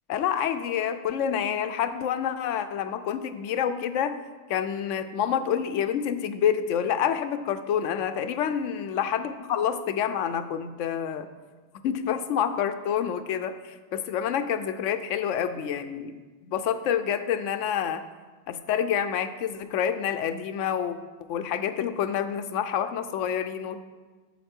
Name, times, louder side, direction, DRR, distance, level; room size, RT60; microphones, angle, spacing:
voice 1, 0.1-4.2 4.5-11.3 11.8-16.2 16.5-18.0 18.5-21.0 21.3-23.8, left 8 dB, 85° left, 10 dB, 0.9 m, -28 dB
8.3 x 7.2 x 4.4 m, 1.3 s
omnidirectional pair, 1.2 m